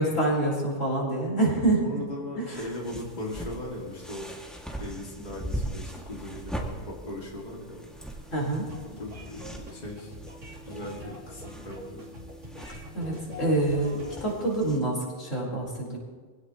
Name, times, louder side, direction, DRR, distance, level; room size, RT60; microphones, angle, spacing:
voice 1, 0.0-1.8 2.4-2.5 8.3-8.7 12.9-16.0, right 2 dB, 80° left, -4 dB, 5.0 m, -26 dB
voice 2, 1.8-4.3 4.8-8.2 8.9-10.1 10.6-12.0, left 1 dB, 35° left, -3 dB, 2.6 m, -38 dB
sound 1, 2.5-14.8, right 1 dB, ahead, 2.3 m, -40 dB
sound 2, 8.7-14.3, left 1 dB, 75° right, 3.0 m, -44 dB
25.5 x 17.0 x 3.1 m, 1.5 s
omnidirectional pair, 1.3 m